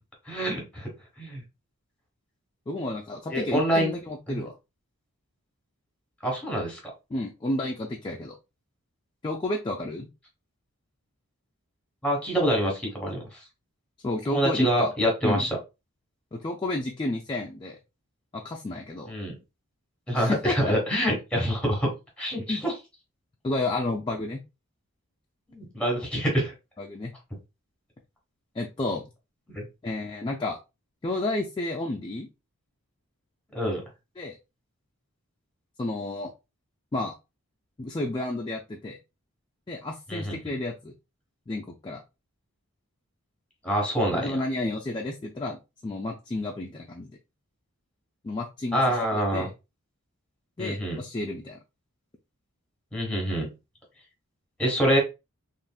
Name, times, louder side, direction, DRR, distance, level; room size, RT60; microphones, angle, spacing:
voice 1, 0.3-0.9 1.2-1.4 3.3-4.0 4.3-4.4 6.2-6.8 12.0-13.2 14.3-15.6 19.1-19.3 20.1-21.9 22.2-22.7 25.5-26.5 29.5-29.6 33.5-33.8 40.1-40.4 43.6-44.4 48.7-49.5 50.6-51.0 52.9-53.5 54.6-55.0, equal, 5° left, 0 dB, 1.1 m, -26 dB
voice 2, 2.7-4.5 7.1-8.4 9.2-10.1 14.0-14.9 15.2-15.5 16.3-17.8 18.3-19.1 20.1-20.7 22.5-22.6 23.4-24.4 26.8-27.1 28.5-29.0 29.8-30.6 31.0-32.3 34.2-34.4 35.8-36.3 36.9-37.1 37.8-39.0 39.7-40.9 41.5-42.0 44.1-47.1 48.2-48.8 49.1-49.5 50.6-51.6, left 2 dB, 20° left, 0 dB, 0.3 m, -31 dB
3.4 x 2.5 x 2.2 m, 0.26 s
head